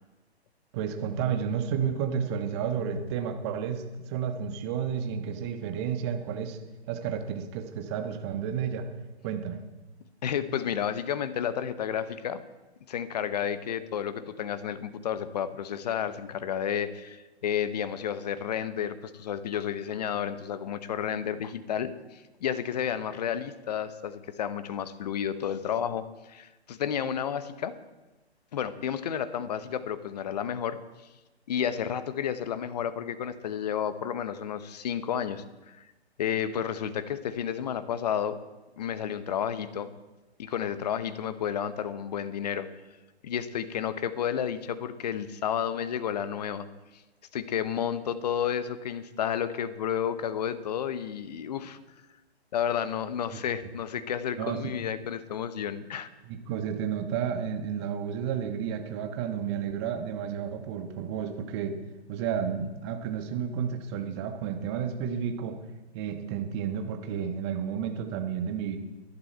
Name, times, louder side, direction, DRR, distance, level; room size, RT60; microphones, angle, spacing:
voice 1, 0.7-6.6 6.9-8.9 9.2-9.6 54.4-54.7 56.2-61.8 62.1-65.6 65.9-68.8, right 7 dB, 25° right, 6 dB, 1.4 m, -31 dB
voice 2, 10.2-12.4 12.9-27.7 28.5-30.8 31.5-35.8 36.2-38.4 38.8-39.9 40.4-42.7 43.2-46.7 47.3-51.8 52.5-56.1, left 8 dB, 40° left, 13 dB, 1.0 m, -31 dB
18.0 x 11.5 x 4.5 m, 1.1 s
figure-of-eight pair, 130°, 33 cm